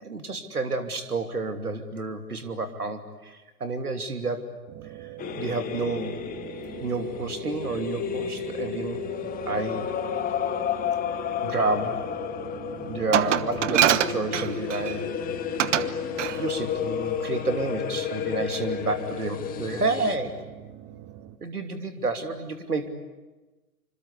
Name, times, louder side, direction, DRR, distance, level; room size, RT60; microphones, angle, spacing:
voice 1, 0.0-4.4 5.0-5.1 5.4-6.1 6.8-9.0 9.5-9.9 11.4-12.0 12.8-15.2 16.4-20.4 21.4-22.9, right 3 dB, 80° right, 7 dB, 3.0 m, -30 dB
sound 1, 4.7-21.4, right 13 dB, 30° right, 1.6 m, -42 dB
sound 2, 5.2-20.2, left 9 dB, 20° left, 1.6 m, -32 dB
Glass, 13.1-15.0 15.6-15.9 16.2-16.4, right 11 dB, 55° right, 1.3 m, -23 dB
26.5 x 26.5 x 8.4 m, 1.2 s
figure-of-eight pair, 110°, 45 cm